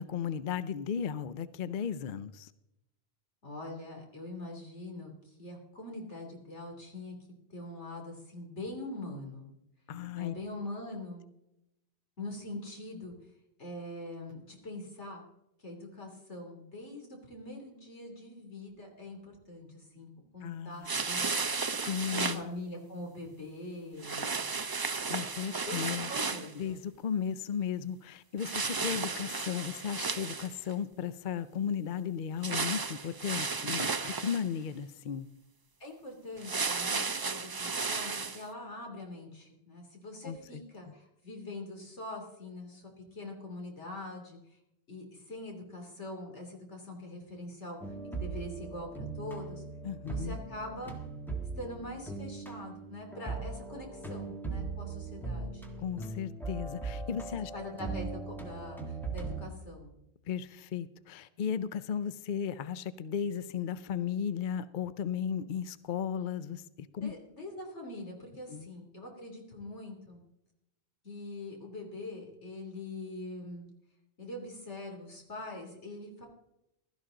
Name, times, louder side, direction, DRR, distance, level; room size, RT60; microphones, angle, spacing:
voice 1, 0.0-2.5 9.9-10.3 20.4-20.9 21.8-22.4 25.1-26.1 26.5-35.3 40.2-40.6 49.8-50.4 55.8-57.5 60.3-67.1 68.5-68.7, left 8 dB, 55° left, 14 dB, 0.6 m, -35 dB
voice 2, 3.4-7.1 7.5-9.6 10.1-11.2 12.2-13.1 13.6-15.2 15.6-20.1 20.3-21.3 22.1-24.3 25.6-26.8 35.8-44.4 44.9-47.9 48.2-49.6 50.1-51.0 51.5-55.6 57.5-59.9 67.0-70.2 71.0-73.6 74.2-76.3, left 2 dB, 85° left, 2 dB, 3.3 m, -43 dB
sound 1, 20.8-22.4 24.0-26.5 28.4-30.7 32.4-34.5 36.4-38.4, right 4 dB, 30° right, 0.4 m, -34 dB
sound 2, 47.8-59.5, right 3 dB, ahead, 1.6 m, -39 dB
16.0 x 13.0 x 3.8 m, 0.85 s
omnidirectional pair, 1.2 m